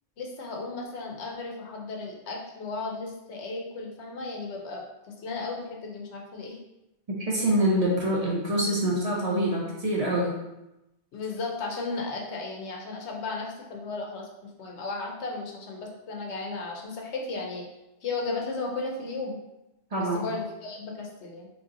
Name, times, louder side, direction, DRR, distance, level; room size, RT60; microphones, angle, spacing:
voice 1, 0.2-6.6 11.1-17.7 18.0-19.4 20.0-21.5, left 3 dB, 85° left, 0 dB, 1.0 m, -35 dB
voice 2, 7.1-10.4 19.9-20.2, right 1 dB, 40° right, -4 dB, 0.8 m, -25 dB
3.8 x 3.1 x 2.6 m, 0.94 s
omnidirectional pair, 1.1 m